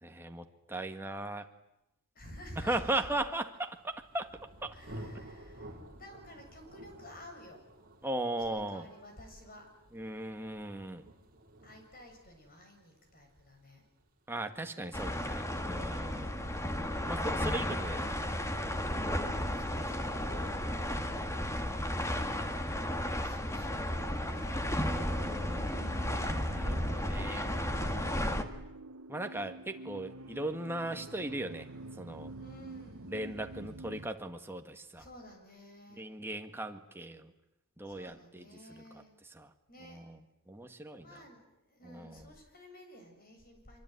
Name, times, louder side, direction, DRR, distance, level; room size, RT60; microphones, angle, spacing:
voice 1, 0.0-1.5 2.6-4.3 4.6-4.8 8.0-8.9 9.9-11.1 14.3-16.4 17.1-18.3 25.0-25.9 26.5-27.5 29.1-31.7 32.0-32.3 33.1-35.0 36.0-37.3 37.8-39.0 39.3-39.5 39.9-40.2 40.5-41.2 41.8-42.2, right 1 dB, 10° right, 5 dB, 1.9 m, -38 dB
voice 2, 2.1-3.1 4.7-7.7 8.4-9.7 11.6-13.9 16.1-17.1 18.9-20.9 22.6-24.6 32.3-33.2 35.0-36.0 37.8-39.1 39.7-40.0 41.0-43.8, equal, 40° left, 4 dB, 7.6 m, -52 dB
Thunder, 3.5-15.1, right 1 dB, 40° right, 4.7 m, -52 dB
sound 1, 14.9-28.4, left 1 dB, 15° left, 1.8 m, -33 dB
sound 2, 23.8-34.1, right 2 dB, 65° right, 1.0 m, -48 dB
25.0 x 24.0 x 9.5 m, 0.85 s
head